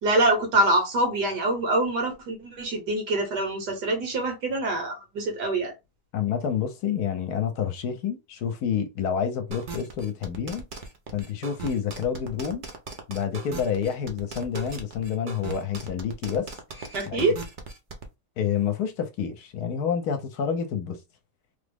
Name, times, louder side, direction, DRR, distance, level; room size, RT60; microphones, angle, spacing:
voice 1, 0.0-5.7 16.9-17.3, right 2 dB, 80° right, 1.7 m, -25 dB
voice 2, 6.1-10.6 11.1-12.7 13.1-16.5 16.8-17.3 18.4-21.0, left 7 dB, 75° left, 1.1 m, -28 dB
sound 1, 9.5-18.0, right 4 dB, 60° right, 0.5 m, -38 dB
3.5 x 2.0 x 3.4 m
omnidirectional pair, 1.8 m